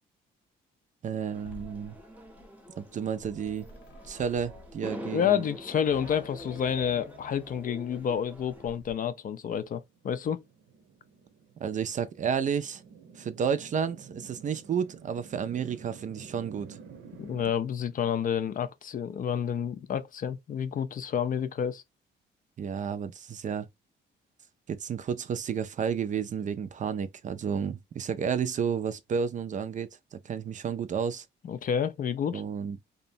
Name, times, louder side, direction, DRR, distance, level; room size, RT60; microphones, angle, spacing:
voice 1, 1.0-2.0 2.8-3.6 4.0-5.4 11.6-12.8 13.2-16.8 22.6-23.7 24.7-31.3 32.3-32.8, right 7 dB, 40° right, 0.4 m, -31 dB
sound 1, 1.2-8.8, equal, 10° right, 0.7 m, -46 dB
sound 2, 1.3-8.9, left 4 dB, 65° left, 0.8 m, -51 dB
voice 2, 5.1-10.4 17.2-21.8 31.4-32.4, left 8 dB, 45° left, 0.4 m, -29 dB
sound 3, 9.9-17.5, right 6 dB, 65° right, 0.7 m, -50 dB
2.6 x 2.1 x 2.7 m
cardioid pair, 90°, 20 cm